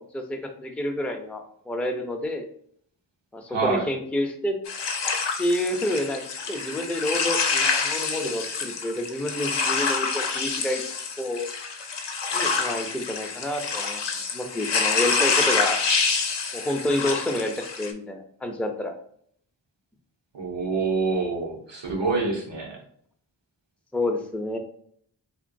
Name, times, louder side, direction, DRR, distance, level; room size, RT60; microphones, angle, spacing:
voice 1, 0.0-2.5 3.3-4.6 5.4-10.8 11.2-11.5 12.3-14.0 14.3-15.8 16.5-18.9 23.9-24.6, left 1 dB, 5° left, 3 dB, 0.4 m, -29 dB
voice 2, 3.5-3.9 20.3-22.8, right 4 dB, 85° right, -1 dB, 1.0 m, -26 dB
sound 1, 4.7-17.9, left 5 dB, 75° left, 0.5 m, -27 dB
2.9 x 2.9 x 2.6 m, 0.62 s
wide cardioid pair, 45°, 42 cm